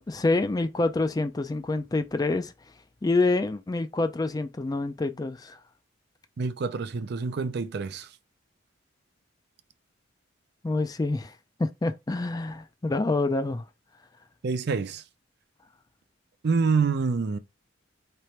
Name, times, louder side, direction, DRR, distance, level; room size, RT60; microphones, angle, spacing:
voice 1, 0.0-2.5 3.0-5.6 10.6-11.3 11.6-13.6, left 2 dB, 20° left, 0.4 m, -27 dB
voice 2, 6.4-8.1 14.4-15.0 16.4-17.4, right 4 dB, 55° right, 0.4 m, -26 dB
3.3 x 2.9 x 4.3 m
head